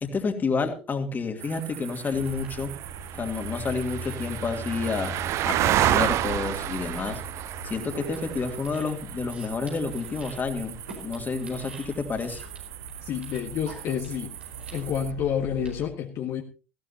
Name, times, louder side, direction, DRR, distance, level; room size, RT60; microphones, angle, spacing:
voice 1, 0.0-2.8 3.1-5.2 5.4-7.2 7.6-10.8 11.0-12.4, left 4 dB, 30° left, 5 dB, 2.6 m, -29 dB
sound 1, 1.4-15.1, right 14 dB, 50° right, 0.6 m, -32 dB
sound 2, 2.1-15.8, right 1 dB, 85° right, 4.7 m, -40 dB
voice 2, 13.0-14.3 14.7-16.4, left 9 dB, 50° left, 2 dB, 1.6 m, -29 dB
18.5 x 15.0 x 2.8 m, 0.33 s
hypercardioid pair, 70°, 6 cm